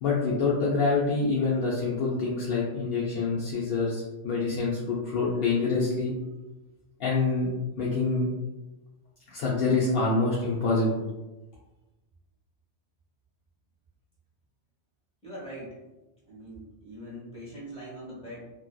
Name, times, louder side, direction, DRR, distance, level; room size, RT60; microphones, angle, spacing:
voice 1, 0.0-6.1 7.0-7.5 7.8-8.3 9.3-11.0, left 3 dB, 65° left, -6 dB, 0.7 m, -26 dB
voice 2, 15.2-15.8 16.3-18.5, equal, 5° left, -8 dB, 0.9 m, -42 dB
2.6 x 2.2 x 2.2 m, 1.1 s
omnidirectional pair, 1.2 m